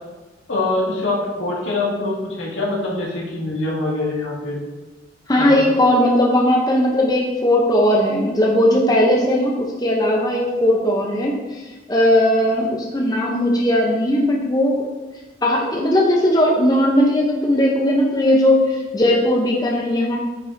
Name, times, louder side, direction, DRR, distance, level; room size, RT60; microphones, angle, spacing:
voice 1, 0.5-4.6 5.4-5.6, left 2 dB, 85° left, -5 dB, 2.0 m, -24 dB
voice 2, 5.3-11.6 11.9-14.9 15.4-20.2, left 1 dB, 20° left, -1 dB, 0.7 m, -18 dB
9.4 x 5.3 x 2.6 m, 1.2 s
head